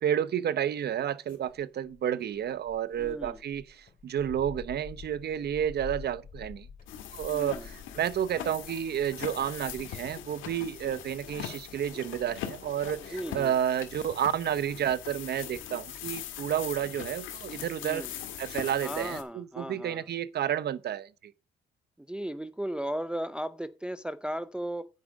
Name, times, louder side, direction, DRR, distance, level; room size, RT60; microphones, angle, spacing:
voice 1, 0.0-6.7 7.1-18.1 18.4-21.3, right 9 dB, 55° right, 0.7 m, -31 dB
sound 1, 1.3-14.4 15.1-15.3 15.5-15.8 16.1-16.8, left 6 dB, 45° left, 2.7 m, -49 dB
voice 2, 3.0-3.4 7.3-7.7 10.8-10.9 13.1-13.5 17.8-18.1 18.8-20.0 22.1-24.9, right 1 dB, 5° right, 0.4 m, -36 dB
sound 2, 6.9-19.2, left 10 dB, 85° left, 1.6 m, -41 dB
9.4 x 5.1 x 6.2 m
cardioid pair, 90°, 20 cm